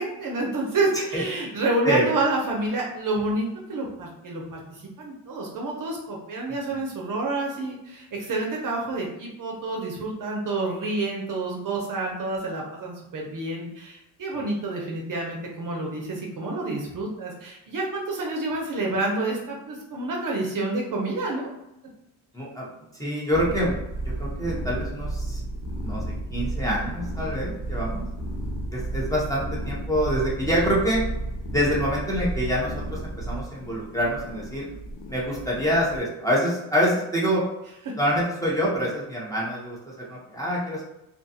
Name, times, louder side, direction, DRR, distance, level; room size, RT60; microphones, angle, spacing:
voice 1, 0.0-21.5 37.8-37.9, right 2 dB, 40° right, -1 dB, 0.7 m, -29 dB
voice 2, 22.3-22.7 23.0-23.7 24.0-25.4 25.8-26.0 26.3-28.0 28.7-31.0 31.5-34.7 35.1-37.4 38.0-40.8, equal, 5° left, -6 dB, 0.8 m, -26 dB
sound 1, 23.3-36.0, right 1 dB, 85° left, 0.7 m, -32 dB
2.5 x 2.3 x 2.7 m, 0.92 s
cardioid pair, 90°, 48 cm